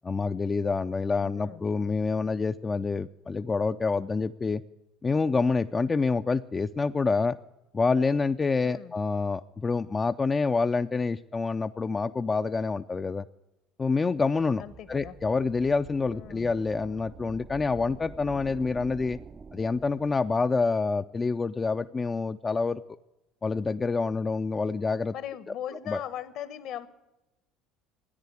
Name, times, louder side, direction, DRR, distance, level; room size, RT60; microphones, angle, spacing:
voice 1, 0.0-4.6 5.0-7.4 7.7-13.2 13.8-14.6 14.9-19.2 19.5-22.8 23.4-25.1 25.9-26.0, left 4 dB, 25° left, 8 dB, 0.4 m, -27 dB
voice 2, 1.2-1.6 8.6-8.9 14.6-15.1 16.1-16.5 25.1-26.9, left 10 dB, 60° left, 15 dB, 1.1 m, -39 dB
sound 1, 14.3-20.6, right 5 dB, 30° right, 0.5 m, -47 dB
13.5 x 9.7 x 8.2 m, 0.96 s
hypercardioid pair, 70°, 0 cm